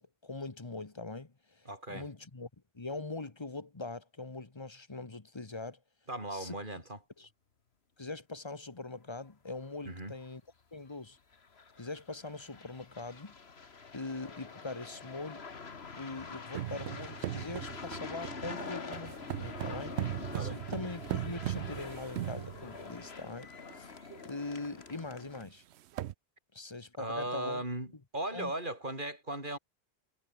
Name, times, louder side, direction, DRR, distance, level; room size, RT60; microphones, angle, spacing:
voice 1, 0.0-2.5 2.7-5.8 6.3-6.6 7.2-7.3 8.0-10.4 10.7-11.2 11.8-13.3 13.9-15.4 15.9-20.0 20.4-25.6 26.5-27.6 28.3-28.5, left 3 dB, 25° left, 1.2 m, -42 dB
voice 2, 1.7-2.1 6.1-7.0 9.8-10.1 20.3-20.6 27.0-27.9 28.1-29.6, right 1 dB, 50° right, 6.2 m, -37 dB
sound 1, 9.6-9.7 10.1-10.3 11.3-25.4, left 5 dB, 75° left, 2.0 m, -46 dB
sound 2, 16.5-23.1 23.7-23.8 24.1-24.4 24.7-24.8 25.4-25.5 25.8-26.1, right 13 dB, 85° right, 0.9 m, -38 dB
omnidirectional pair, 1.1 m